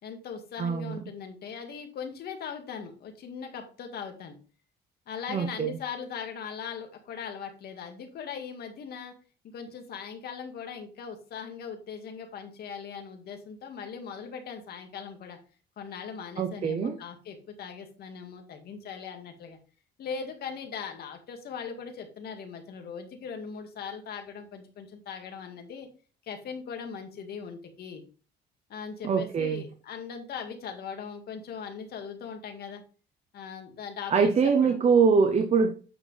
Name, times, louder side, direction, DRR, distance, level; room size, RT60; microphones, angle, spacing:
voice 1, 0.0-4.4 5.1-9.1 9.5-15.4 15.8-19.6 20.0-25.9 26.2-28.0 28.7-32.8 33.3-34.1 34.4-34.8, left 6 dB, 60° left, 2.0 m, -39 dB
voice 2, 0.6-1.0 5.3-5.8 16.4-17.0 29.0-29.6 34.1-35.7, right 5 dB, 35° right, 0.8 m, -23 dB
8.9 x 6.1 x 3.4 m
cardioid pair, 125°, 19 cm